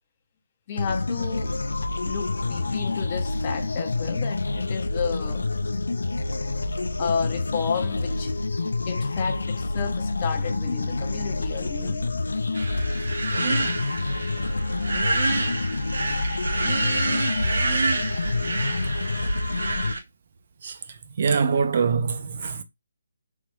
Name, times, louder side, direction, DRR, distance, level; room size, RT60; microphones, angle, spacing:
voice 1, 0.7-1.6 2.1-5.5 7.0-8.3 8.9-12.2, left 6 dB, 25° left, 0.5 m, -32 dB
sound 1, 0.8-19.9, left 3 dB, 85° left, 0.4 m, -28 dB
sound 2, 12.5-20.0, right 2 dB, 75° right, 1.0 m, -27 dB
voice 2, 21.2-22.6, right 5 dB, 45° right, 0.4 m, -23 dB
3.2 x 2.3 x 2.9 m
hypercardioid pair, 165°, 0 cm